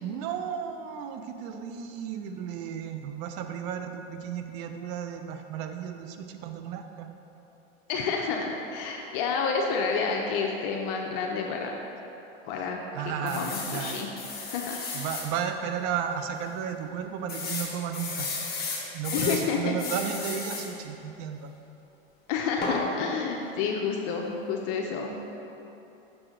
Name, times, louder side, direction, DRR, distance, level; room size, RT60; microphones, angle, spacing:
voice 1, 0.0-7.1 12.6-14.0 14.9-18.3 18.9-21.5, right 8 dB, 50° right, 6 dB, 0.6 m, -34 dB
voice 2, 7.9-11.8 12.4-12.8 13.0-14.1 14.5-14.7 19.1-19.7 22.3-25.2, left 5 dB, 60° left, 1 dB, 0.6 m, -29 dB
sound 1, 13.3-15.3 15.8-15.9 16.2-16.3 17.3-19.4 19.8-20.7 22.6-22.8, left 4 dB, 30° left, 1.3 m, -34 dB
6.1 x 4.9 x 3.7 m, 3.0 s
supercardioid pair, 115°, 31 cm